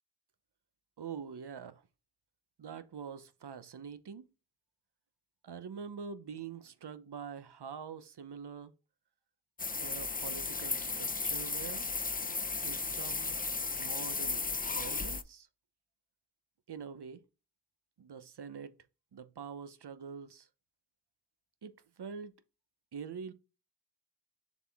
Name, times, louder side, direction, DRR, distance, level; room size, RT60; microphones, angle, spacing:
voice 1, 1.0-1.9 2.6-4.3 5.4-8.7 9.7-11.9 12.6-13.3 13.8-15.5 16.7-17.2 18.0-18.7 19.1-20.5 21.6-22.3 22.9-23.3, right 6 dB, 80° right, 0.9 m, -45 dB
sound 1, 9.6-15.2, left 4 dB, 20° left, 0.6 m, -35 dB
7.1 x 4.1 x 3.5 m
wide cardioid pair, 65°, 40 cm